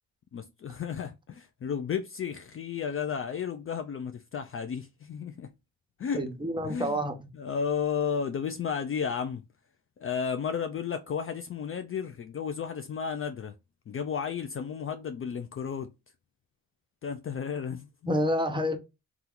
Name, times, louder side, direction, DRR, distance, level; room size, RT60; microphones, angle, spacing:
voice 1, 0.3-5.5 6.0-6.2 6.6-7.0 7.3-9.4 10.0-13.5 13.9-15.9 17.0-18.2, left 7 dB, 40° left, 0.4 m, -33 dB
voice 2, 6.2-7.1 18.1-18.8, equal, 15° right, 1.0 m, -28 dB
2.8 x 2.4 x 3.7 m
supercardioid pair, 55°, 34 cm